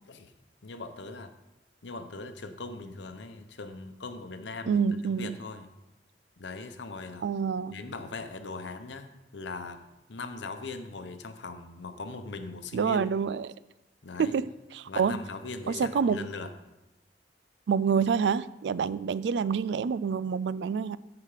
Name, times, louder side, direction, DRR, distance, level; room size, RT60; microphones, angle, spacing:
voice 1, 0.6-1.3 1.8-4.9 5.2-5.7 6.4-7.2 7.7-9.8 10.1-13.0 14.0-14.4 14.9-16.5, left 3 dB, 80° left, 8 dB, 0.8 m, -40 dB
voice 2, 4.7-5.4 7.2-7.8 12.7-13.5 14.2-14.5 14.7-15.2 15.7-16.3 17.7-21.0, right 6 dB, 70° right, 18 dB, 0.3 m, -27 dB
13.5 x 5.0 x 5.0 m, 0.98 s
head